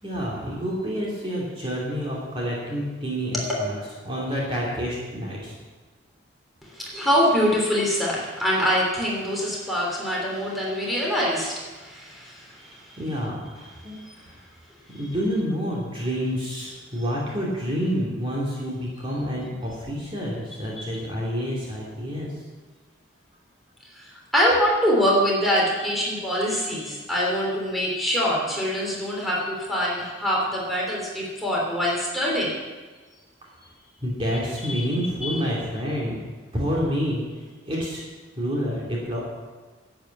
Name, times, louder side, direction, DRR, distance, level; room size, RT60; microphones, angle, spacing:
voice 1, 0.0-3.8 4.0-5.6 12.7-14.4 14.9-22.4 34.0-36.2 36.5-38.0 38.4-39.2, equal, 25° right, -4 dB, 2.7 m, -28 dB
voice 2, 6.6-13.0 13.8-14.1 23.9-32.5 34.7-34.8 35.2-35.4, equal, ahead, -5 dB, 3.3 m, -24 dB
11.0 x 8.9 x 8.3 m, 1.3 s
head